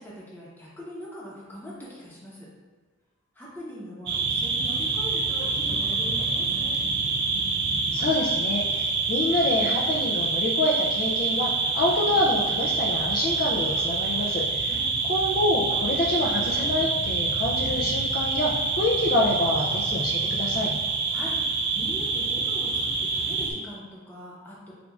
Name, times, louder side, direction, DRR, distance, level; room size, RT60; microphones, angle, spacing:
voice 1, 0.0-2.5 3.3-6.7 14.7-14.9 21.1-21.4 21.7-24.7, equal, 10° left, -6 dB, 0.8 m, -41 dB
sound 1, 4.1-23.5, right 4 dB, 55° right, 0.6 m, -26 dB
voice 2, 7.9-14.8 15.1-20.7, left 1 dB, 45° left, -3 dB, 0.4 m, -26 dB
6.9 x 2.4 x 2.4 m, 1.4 s
head